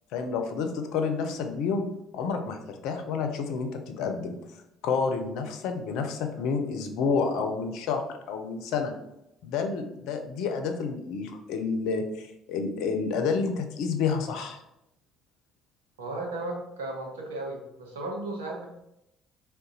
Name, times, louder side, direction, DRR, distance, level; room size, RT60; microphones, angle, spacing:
voice 1, 0.1-1.9 2.1-4.6 4.8-8.0 8.3-8.9 9.4-14.6, left 5 dB, 65° left, 6 dB, 0.5 m, -29 dB
voice 2, 16.0-18.6, right 2 dB, 85° right, 0 dB, 0.8 m, -35 dB
3.8 x 2.2 x 3.9 m, 0.84 s
hypercardioid pair, 55°, 0 cm